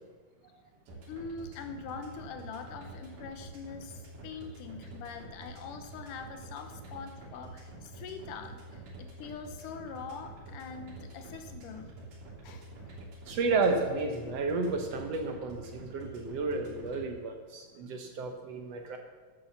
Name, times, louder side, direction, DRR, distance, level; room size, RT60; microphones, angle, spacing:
sound 1, 0.9-17.0, right 1 dB, 90° right, 4.7 m, -47 dB
voice 1, 1.1-11.9 12.4-13.0, left 5 dB, 85° left, 6 dB, 2.6 m, -43 dB
voice 2, 13.3-19.0, right 3 dB, 65° right, 4 dB, 1.8 m, -32 dB
11.5 x 8.4 x 7.3 m, 1.4 s
omnidirectional pair, 3.6 m